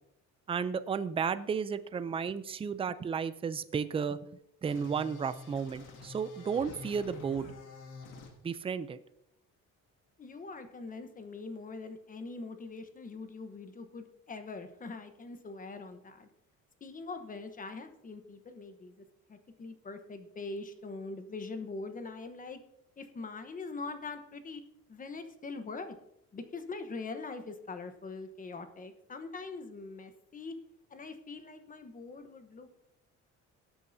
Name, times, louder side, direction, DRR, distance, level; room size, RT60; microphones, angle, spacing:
voice 1, 0.5-4.2 4.6-7.5 8.4-9.0, right 6 dB, 20° right, 13 dB, 0.4 m, -33 dB
sound 1, 4.7-8.3, left 3 dB, 85° left, 2.2 m, -48 dB
voice 2, 10.2-16.3 16.8-22.6 23.0-24.6 24.9-25.9 26.3-30.5 30.9-32.7, left 3 dB, 25° left, 8 dB, 1.0 m, -43 dB
19.0 x 8.5 x 2.7 m, 0.78 s
cardioid pair, 150°, 31 cm